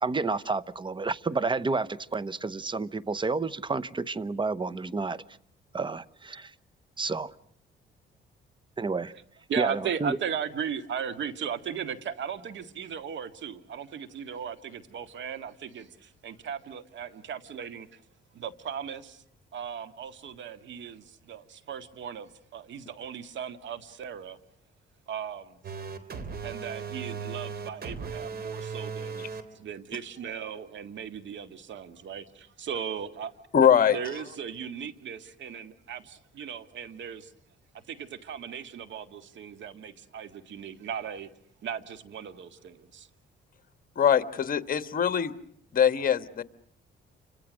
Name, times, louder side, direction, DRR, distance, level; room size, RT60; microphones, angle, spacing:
voice 1, 0.0-5.2 5.7-6.5 7.0-7.3 8.8-9.1 9.6-10.2, right 3 dB, 25° right, 1.0 m, -30 dB
voice 2, 9.5-18.0 18.3-19.2 19.5-24.4 25.1-25.6 26.4-33.3 33.9-37.3 37.7-41.3 41.6-43.1, right 8 dB, 70° right, 2.0 m, -37 dB
sound 1, 25.6-29.4, right 5 dB, 50° right, 3.5 m, -37 dB
voice 3, 33.5-34.0 44.0-45.3 45.7-46.4, left 8 dB, 45° left, 1.5 m, -22 dB
29.0 x 26.0 x 6.4 m
cardioid pair, 90°, 20 cm